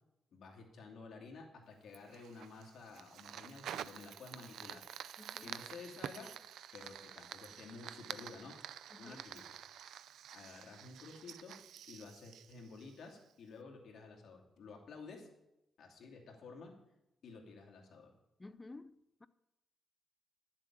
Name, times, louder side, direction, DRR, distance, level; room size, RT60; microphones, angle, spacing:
voice 1, 0.3-4.8 5.1-6.3 6.7-8.6 9.0-9.6 10.3-11.6 11.9-15.3 15.8-16.7 17.2-18.1, left 4 dB, 55° left, 2.6 m, -52 dB
Fire, 1.9-13.3, right 10 dB, 90° right, 0.4 m, -49 dB
voice 2, 5.2-5.5 8.9-9.2 18.4-18.9 19.2-19.3, left 2 dB, 15° left, 0.5 m, -52 dB
11.5 x 7.5 x 9.1 m
wide cardioid pair, 160°, 0 cm